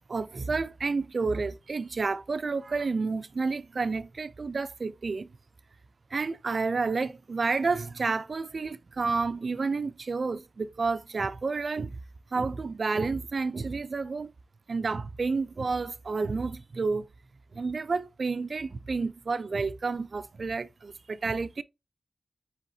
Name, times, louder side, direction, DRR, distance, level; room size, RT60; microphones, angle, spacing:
voice 1, 0.1-5.3 6.1-12.0 12.3-14.3 14.7-17.1 17.5-21.6, right 4 dB, 60° right, 0.4 m, -30 dB
4.7 x 3.5 x 2.6 m
cardioid pair, 45°, 0 cm